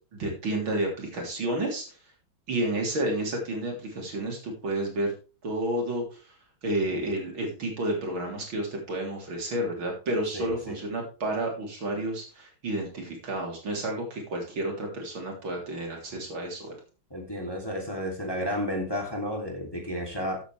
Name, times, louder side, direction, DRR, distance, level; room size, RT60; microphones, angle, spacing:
voice 1, 0.1-2.0 2.5-5.1 5.4-6.2 6.6-16.8, right 1 dB, 65° right, 0 dB, 4.1 m, -30 dB
voice 2, 10.3-10.8 17.1-20.4, equal, 10° left, 1 dB, 2.8 m, -32 dB
14.0 x 8.9 x 3.4 m, 0.33 s
omnidirectional pair, 2.4 m